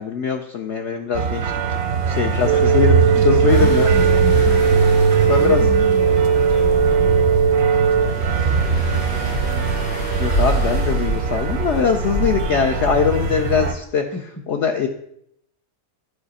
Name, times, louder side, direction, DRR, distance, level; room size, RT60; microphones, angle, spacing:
voice 1, 0.0-1.8 2.1-3.8 5.3-5.6 10.2-14.0 14.5-14.9, left 6 dB, 65° left, 4 dB, 0.7 m, -21 dB
sound 1, 1.1-13.7, right 5 dB, 60° right, 0.7 m, -21 dB
voice 2, 2.3-4.7 5.2-9.7 14.1-14.2, left 2 dB, 15° left, 5 dB, 0.7 m, -33 dB
sound 2, 2.5-8.1, right 7 dB, 80° right, 1.1 m, -18 dB
sound 3, 3.5-13.7, equal, 80° left, 2.9 m, -28 dB
11.5 x 4.9 x 4.1 m, 0.73 s
omnidirectional pair, 1.7 m